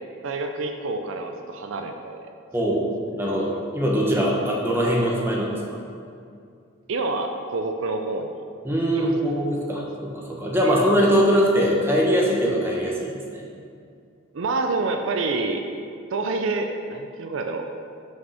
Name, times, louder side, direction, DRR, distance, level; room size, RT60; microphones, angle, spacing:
voice 1, 0.2-2.3 6.9-8.3 8.9-9.1 10.6-10.8 14.3-15.6 16.1-17.7, right 3 dB, 70° right, 5 dB, 0.5 m, -27 dB
voice 2, 2.5-2.8 3.1-5.8 8.6-13.4, equal, 10° right, -3 dB, 1.0 m, -22 dB
5.8 x 5.3 x 5.6 m, 2.3 s
head